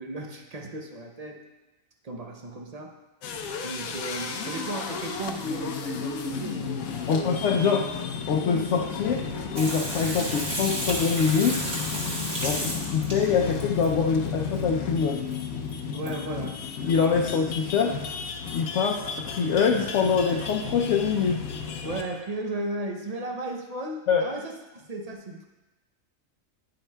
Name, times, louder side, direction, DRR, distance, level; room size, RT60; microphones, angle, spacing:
voice 1, 0.0-1.4 2.0-3.0 3.6-7.5 12.4-12.7 15.9-16.6 21.8-25.4, right 2 dB, 45° right, 2 dB, 0.5 m, -35 dB
sound 1, 3.2-22.2, left 6 dB, 90° left, 1.1 m, -33 dB
voice 2, 7.1-8.0 8.3-9.3 9.5-11.6 12.4-12.6 12.9-15.3 16.9-18.0 18.5-21.4 24.1-24.3, left 6 dB, 70° left, 1 dB, 0.8 m, -24 dB
Water tap faucet / Sink (filling or washing), 9.6-13.9 15.3-15.4 15.7-15.8 16.1-16.2, right 1 dB, 30° right, 1.6 m, -32 dB
10.5 x 7.7 x 2.2 m, 1.1 s
omnidirectional pair, 1.4 m